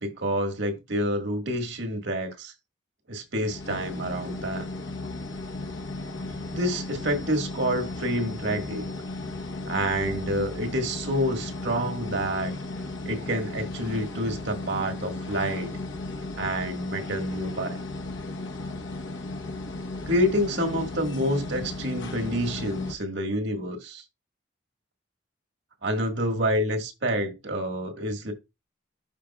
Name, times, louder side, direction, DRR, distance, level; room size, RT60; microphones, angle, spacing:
voice 1, 0.0-2.5 3.1-4.7 6.5-8.9 9.7-12.5 13.1-15.8 16.4-17.8 20.1-24.0 25.8-28.3, equal, 70° right, 1.7 m, -28 dB
sound 1, 3.4-22.9, left 2 dB, 75° left, 1.0 m, -35 dB
11.5 x 5.0 x 2.3 m
head